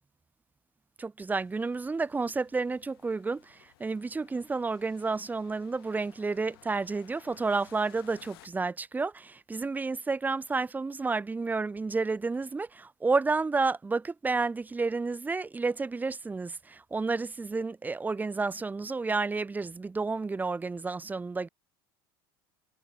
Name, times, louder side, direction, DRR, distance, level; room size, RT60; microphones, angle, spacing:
voice 1, 1.0-21.5, right 4 dB, 15° right, 0.5 m, -31 dB
sound 1, 1.3-8.5, left 18 dB, 80° left, 4.3 m, -59 dB
hypercardioid pair, 90°, 12 cm